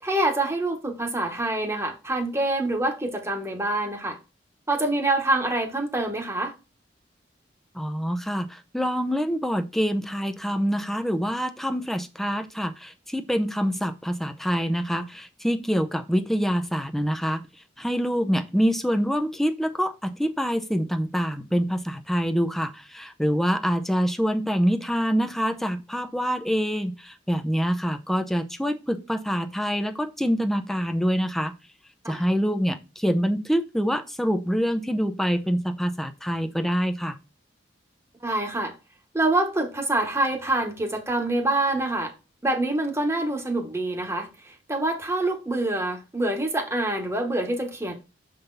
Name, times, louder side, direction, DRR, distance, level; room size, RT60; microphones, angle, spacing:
voice 1, 0.0-4.2 4.7-6.5 32.0-32.3 38.2-38.7 39.1-42.1 42.4-47.9, right 2 dB, 15° right, 1.1 m, -26 dB
voice 2, 7.7-17.4 17.8-31.5 32.1-37.2, equal, ahead, 0.5 m, -25 dB
6.8 x 3.8 x 4.0 m
head